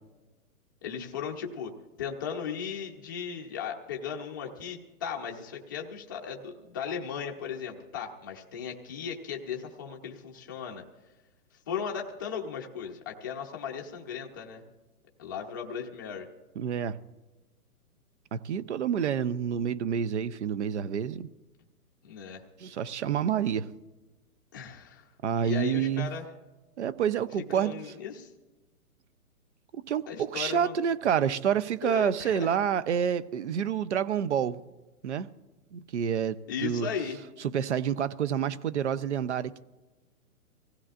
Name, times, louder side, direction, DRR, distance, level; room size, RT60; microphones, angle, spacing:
voice 1, 0.8-1.7 2.0-10.8 11.7-14.6 15.2-16.3 22.0-22.4 24.5-25.1 25.4-26.2 27.5-28.3 30.1-30.7 31.8-32.5 36.5-37.2, left 7 dB, 15° left, 0.6 m, -36 dB
voice 2, 16.6-17.0 18.3-21.3 22.6-23.7 25.2-26.1 26.8-27.8 29.7-34.6 35.0-35.3 35.7-36.9 37.4-39.6, right 8 dB, 50° right, 0.6 m, -28 dB
25.0 x 16.0 x 2.5 m
hypercardioid pair, 165°, 46 cm